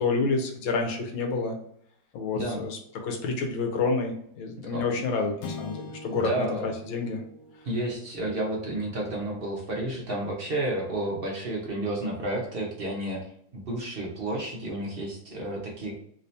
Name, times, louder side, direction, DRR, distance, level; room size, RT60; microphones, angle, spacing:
voice 1, 0.0-1.5 2.1-2.8 3.0-7.2, left 4 dB, 85° left, 2 dB, 1.6 m, -28 dB
voice 2, 2.3-2.6 4.7-5.0 6.1-6.7 7.6-16.0, right 1 dB, 50° right, -2 dB, 0.6 m, -31 dB
sound 1, 5.4-9.9, left 3 dB, 70° left, 1.2 m, -44 dB
3.6 x 2.7 x 3.2 m, 0.68 s
omnidirectional pair, 2.1 m